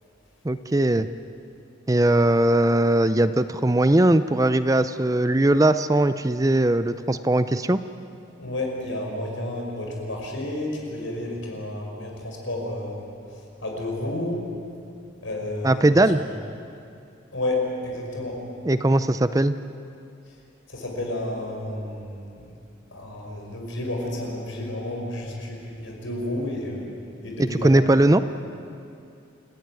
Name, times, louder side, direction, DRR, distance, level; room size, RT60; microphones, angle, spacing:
voice 1, 0.4-1.1 1.9-7.8 15.6-16.2 18.6-19.6 27.4-28.2, right 1 dB, 15° right, 12 dB, 0.5 m, -20 dB
voice 2, 8.4-14.4 15.2-16.0 17.3-18.4 20.7-22.5 22.9-26.9 27.2-27.8, left 1 dB, 75° left, 0 dB, 5.7 m, -31 dB
28.5 x 15.5 x 9.6 m, 2.5 s
head